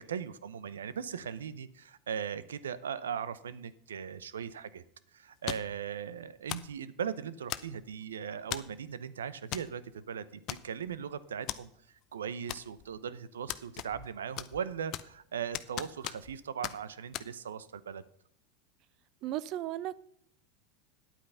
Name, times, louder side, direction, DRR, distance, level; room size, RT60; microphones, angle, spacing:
voice 1, 0.0-4.8 5.1-11.7 12.1-18.0, right 7 dB, 85° right, 0.7 m, -39 dB
sound 1, 5.5-5.8 6.5-6.8 7.5-7.9 8.5-8.8 9.5-9.7 10.0-10.1 10.5-11.0 11.5-11.6 12.5-13.0 13.5-14.1 14.4-15.2 15.5-16.4 16.6-16.8 17.1-17.3, left 14 dB, 50° left, 0.7 m, -38 dB
voice 2, 19.2-20.0, right 13 dB, 50° right, 0.6 m, -35 dB
10.5 x 8.6 x 5.6 m
hypercardioid pair, 95°, 0 cm